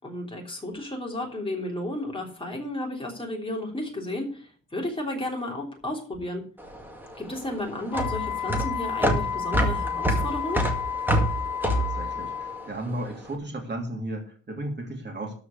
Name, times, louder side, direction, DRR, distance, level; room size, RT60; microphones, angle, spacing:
voice 1, 0.0-6.4 7.2-10.6, left 1 dB, 15° left, 0 dB, 3.3 m, -33 dB
sound 1, 6.6-13.1, right 1 dB, 5° right, 2.0 m, -27 dB
Wind instrument woodwind instrument, 7.9-12.7, left 8 dB, 65° left, 0.6 m, -31 dB
voice 2, 11.6-15.3, right 1 dB, 30° right, 2 dB, 2.9 m, -34 dB
13.0 x 4.9 x 8.3 m, 0.42 s
wide cardioid pair, 165°, 33 cm